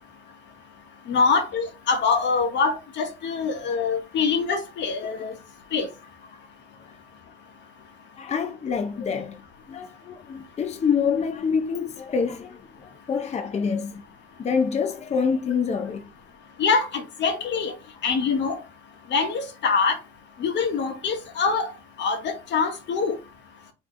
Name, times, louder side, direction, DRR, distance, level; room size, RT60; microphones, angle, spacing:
voice 1, 1.1-5.3 5.7-5.9 16.6-17.7 18.0-18.6 19.1-20.0 20.4-23.2, left 5 dB, 65° left, 1.2 m, -24 dB
voice 2, 8.2-14.0 14.4-16.1 17.3-17.4, left 6 dB, 35° left, 0.6 m, -27 dB
3.9 x 3.0 x 3.1 m
supercardioid pair, 80°, 20 cm